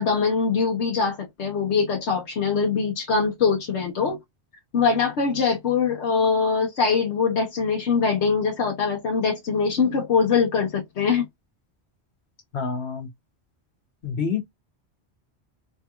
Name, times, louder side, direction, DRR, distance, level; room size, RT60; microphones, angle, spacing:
voice 1, 0.0-4.2 4.7-11.3, left 5 dB, 85° left, 1.2 m, -23 dB
voice 2, 12.5-13.1 14.0-14.4, left 5 dB, 70° left, 1.5 m, -27 dB
3.5 x 2.4 x 2.9 m
omnidirectional pair, 1.1 m